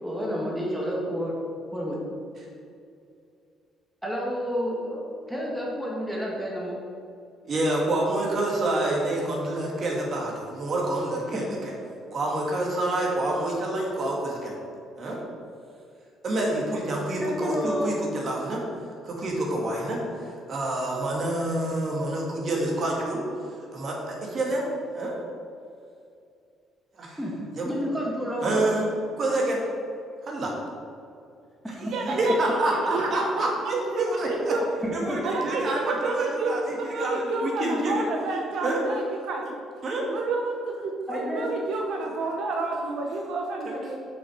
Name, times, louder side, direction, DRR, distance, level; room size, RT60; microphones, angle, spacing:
voice 1, 0.0-1.4 1.7-2.0 4.0-5.0 5.3-6.8 11.3-11.4 17.2-17.9 27.2-27.3 27.6-28.8 32.1-32.2 34.8-35.2 41.1-41.5, equal, 5° right, -3 dB, 1.6 m, -30 dB
voice 2, 7.4-11.7 12.1-14.5 15.0-15.2 16.2-18.6 19.0-23.2 23.7-24.6 24.9-25.1 27.0-27.2 27.6-27.7 28.4-28.9 29.2-29.6 30.2-30.5 32.2-34.3 34.9-38.0 38.6-38.8 39.8-40.0, right 1 dB, 45° right, -2 dB, 1.9 m, -27 dB
voice 3, 31.8-34.6 35.2-39.6 40.1-44.0, right 3 dB, 70° right, 1 dB, 0.9 m, -30 dB
6.3 x 6.1 x 4.9 m, 2.5 s
cardioid pair, 120°, 0 cm